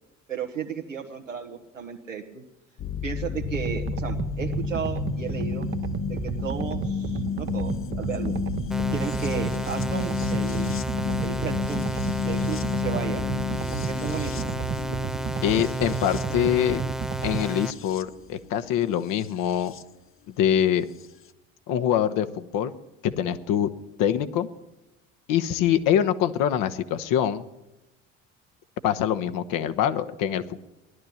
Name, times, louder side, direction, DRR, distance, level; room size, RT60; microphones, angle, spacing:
voice 1, 0.3-2.4 3.0-5.7 6.1-8.4 8.9-10.8 11.2-13.3 13.9-14.6, right 7 dB, 90° right, 3 dB, 1.5 m, -34 dB
sound 1, 2.8-19.8 21.0-21.1, left 8 dB, 35° left, 0.8 m, -32 dB
sound 2, 3.4-17.4, right 8 dB, 30° right, 0.9 m, -33 dB
sound 3, 8.7-17.7, right 1 dB, ahead, 0.7 m, -32 dB
voice 2, 15.4-16.8 17.2-19.7 20.3-20.8 21.7-22.7 23.0-23.7 24.0-24.5 25.3-27.4 28.8-30.6, left 10 dB, 60° left, 9 dB, 1.1 m, -24 dB
17.5 x 11.5 x 7.1 m, 1.0 s
figure-of-eight pair, 55°, 37 cm